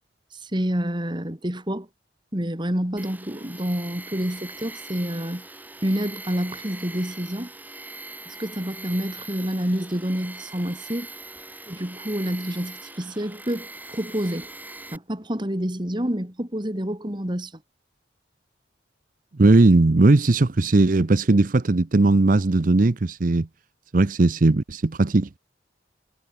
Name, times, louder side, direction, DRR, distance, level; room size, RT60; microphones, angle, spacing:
voice 1, 0.3-1.9 2.3-5.5 5.8-7.5 8.3-11.1 11.7-14.5 14.9-17.5, equal, 25° right, 2.5 m, -28 dB
Tools, 3.0-15.0, right 2 dB, 10° right, 3.7 m, -41 dB
voice 2, 19.4-23.5 23.9-25.3, right 2 dB, 45° right, 0.7 m, -18 dB
head